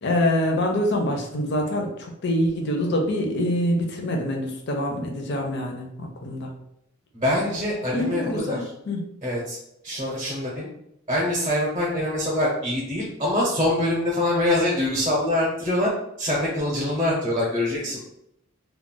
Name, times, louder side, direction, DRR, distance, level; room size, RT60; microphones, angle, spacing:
voice 1, 0.0-6.5 7.9-9.1, left 1 dB, 55° left, 2 dB, 0.6 m, -25 dB
voice 2, 7.1-8.6 9.2-9.6 9.8-10.7 11.1-15.9 16.2-18.0, left 1 dB, 25° right, -4 dB, 0.7 m, -24 dB
2.3 x 2.1 x 3.7 m, 0.78 s
head